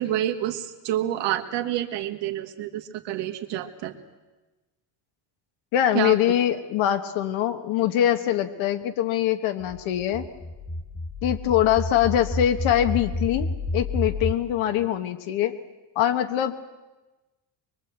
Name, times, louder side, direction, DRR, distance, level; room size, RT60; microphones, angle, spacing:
voice 1, 0.0-3.9 5.9-6.2, right 12 dB, 65° right, 5 dB, 2.0 m, -28 dB
voice 2, 5.7-10.2 11.2-13.5 13.7-15.5 15.9-16.6, left 11 dB, 90° left, 7 dB, 1.4 m, -23 dB
sound 1, 9.6-14.4, left 2 dB, 5° left, 0.8 m, -30 dB
23.5 x 23.0 x 8.1 m, 1.2 s
cardioid pair, 180°, 46 cm